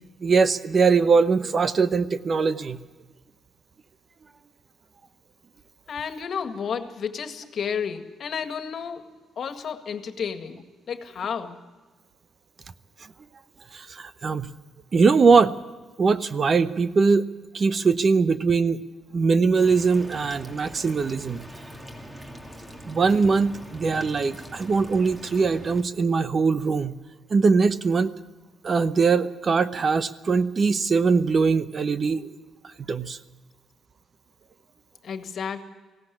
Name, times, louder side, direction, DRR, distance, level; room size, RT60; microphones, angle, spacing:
voice 1, 0.2-2.8 13.7-14.5 14.9-15.5 16.0-17.3 17.5-18.8 19.1-21.5 22.9-27.0 27.3-28.1 28.6-32.4 32.8-33.2, right 4 dB, 40° right, 13 dB, 0.9 m, -21 dB
voice 2, 5.9-9.1 9.4-11.6 35.0-35.6, left 6 dB, 55° left, 8 dB, 1.8 m, -32 dB
sound 1, 19.6-25.8, equal, 10° right, 2.6 m, -42 dB
18.5 x 16.5 x 9.9 m, 1.3 s
cardioid pair, 90°, 0 cm